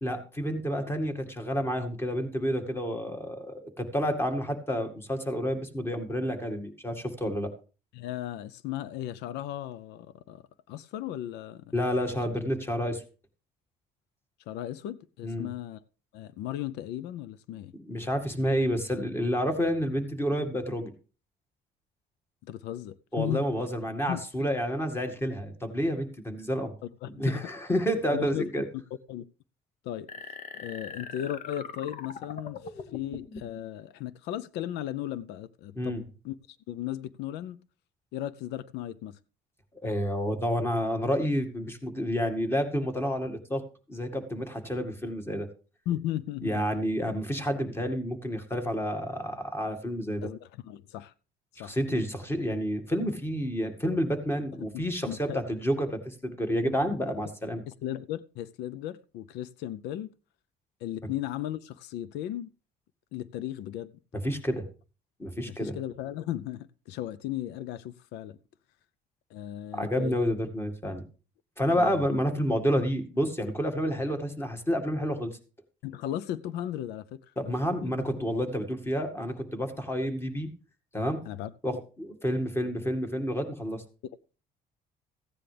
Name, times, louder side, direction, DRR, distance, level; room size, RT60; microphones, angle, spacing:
voice 1, 0.0-7.5 11.7-13.0 15.2-15.5 17.9-20.9 23.1-26.7 27.1-28.6 35.8-36.0 39.8-43.6 43.9-45.5 46.4-50.3 51.6-57.6 64.2-64.6 65.2-65.8 69.7-71.0 71.6-75.4 77.4-80.5 80.9-81.2 81.6-83.8, equal, 15° left, 2.0 m, -29 dB
voice 2, 7.9-11.7 14.5-15.8 16.1-17.7 22.4-23.4 24.1-24.2 27.0-27.4 28.1-28.8 29.1-29.2 29.8-30.1 30.5-37.6 38.1-39.2 45.9-46.6 50.2-51.1 51.6-51.8 54.7-55.4 56.9-57.0 57.7-60.1 60.8-62.5 63.1-63.9 65.6-68.4 69.3-70.3 71.8-72.0 75.8-77.2 77.5-77.6 77.8-77.9 81.2-81.8, left 12 dB, 90° left, 0.6 m, -36 dB
sound 1, 30.1-33.6, left 5 dB, 50° left, 1.3 m, -41 dB
15.5 x 9.8 x 3.4 m
cardioid pair, 110°, 17 cm